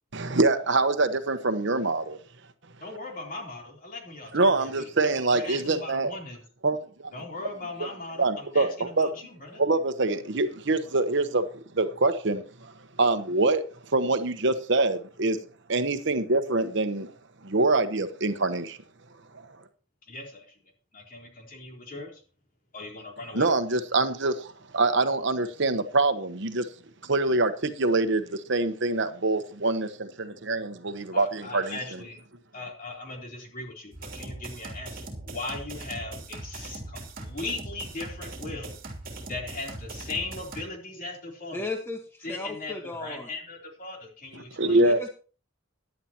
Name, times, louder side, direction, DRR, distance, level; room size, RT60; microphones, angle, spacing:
voice 1, 0.1-2.2 4.3-6.1 6.6-7.1 7.8-7.9 8.2-9.1 9.6-11.4 11.7-13.7 13.9-15.4 15.7-17.1 17.4-18.8 19.3-19.5 23.3-26.7 27.0-32.0 44.6-45.0, right 2 dB, 65° right, 1.0 m, -25 dB
voice 2, 2.8-4.9 5.3-6.4 7.1-9.6 20.1-20.6 20.9-22.2 22.7-23.5 31.1-32.2 32.5-38.8 39.3-41.7 42.2-45.0, left 3 dB, 45° left, 3.5 m, -39 dB
sound 1, 33.9-40.6, right 2 dB, 45° right, 2.9 m, -40 dB
voice 3, 41.5-43.3 44.8-45.1, left 2 dB, 10° left, 1.4 m, -35 dB
16.0 x 10.5 x 2.9 m
head